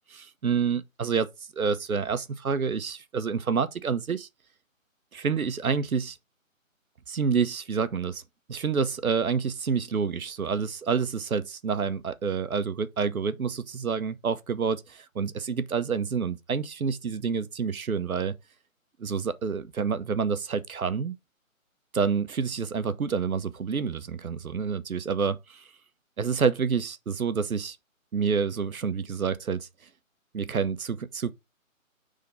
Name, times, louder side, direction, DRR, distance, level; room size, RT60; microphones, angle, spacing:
voice 1, 0.1-1.3 1.5-4.3 5.1-6.2 7.1-8.2 8.5-18.3 19.0-21.1 21.9-25.7 26.2-27.8 28.1-29.7 30.3-31.3, right 6 dB, 90° right, 0.9 m, -28 dB
5.1 x 3.7 x 5.5 m
hypercardioid pair, 165°, 41 cm